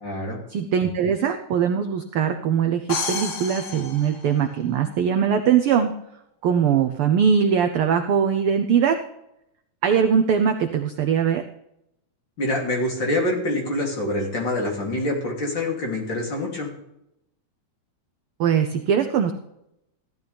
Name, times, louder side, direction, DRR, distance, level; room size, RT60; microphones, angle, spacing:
voice 1, 0.0-0.4 12.4-16.7, left 1 dB, 40° left, -1 dB, 3.5 m, -25 dB
voice 2, 0.5-5.9 6.4-9.0 9.8-11.4 18.4-19.3, right 7 dB, 80° right, 7 dB, 1.2 m, -21 dB
sound 1, 2.9-4.9, left 4 dB, 65° left, 3.1 m, -31 dB
16.0 x 12.5 x 3.5 m, 0.82 s
omnidirectional pair, 3.4 m